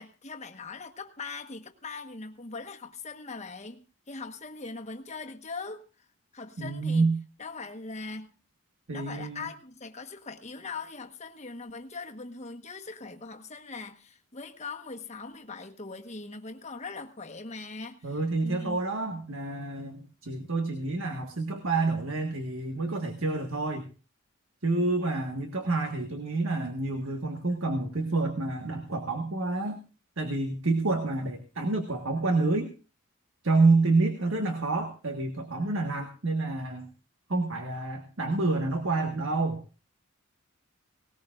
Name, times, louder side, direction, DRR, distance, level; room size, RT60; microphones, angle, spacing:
voice 1, 0.0-6.1 6.3-7.1 7.4-8.4 8.9-18.8, left 4 dB, 30° left, 1.3 m, -41 dB
voice 2, 6.6-7.1 8.9-9.5 18.0-23.9 24.6-29.8 30.2-32.7 33.4-36.9 37.3-39.6, right 3 dB, 65° right, 1.6 m, -28 dB
19.0 x 19.0 x 2.5 m
head